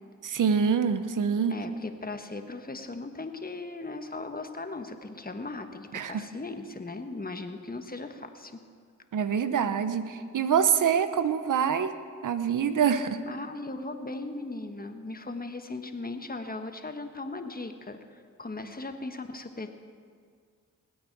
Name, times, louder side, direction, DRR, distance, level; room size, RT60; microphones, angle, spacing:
voice 1, 0.2-1.6 5.9-6.2 9.1-11.9 12.2-13.2, right 7 dB, 70° right, 11 dB, 0.9 m, -25 dB
voice 2, 1.5-8.5 13.3-19.7, left 3 dB, 25° left, 7 dB, 1.3 m, -38 dB
20.0 x 8.8 x 4.6 m, 2.1 s
cardioid pair, 45°, 33 cm